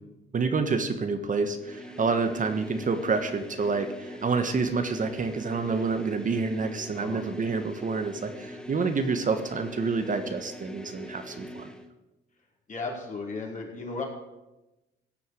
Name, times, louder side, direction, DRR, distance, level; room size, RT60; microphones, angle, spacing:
voice 1, 0.3-11.7, right 4 dB, 40° right, 8 dB, 1.4 m, -28 dB
sound 1, 1.6-11.9, equal, 5° left, 1.6 m, -42 dB
voice 2, 6.9-7.2 12.7-14.0, left 3 dB, 40° left, -1 dB, 5.0 m, -35 dB
16.0 x 7.0 x 9.2 m, 1.0 s
cardioid pair, 90°, 20 cm